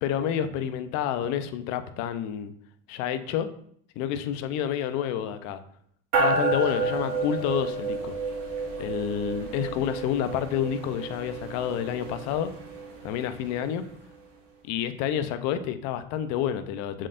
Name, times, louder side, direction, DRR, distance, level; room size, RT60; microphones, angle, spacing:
voice 1, 0.0-2.5 2.9-3.5 4.0-5.6 6.2-8.2 8.8-12.5 13.0-13.9 14.6-17.1, left 9 dB, 65° left, 10 dB, 0.7 m, -29 dB
sound 1, 6.1-13.8, right 3 dB, 85° right, 3.1 m, -31 dB
7.5 x 6.4 x 2.6 m, 0.64 s
cardioid pair, 140°, 29 cm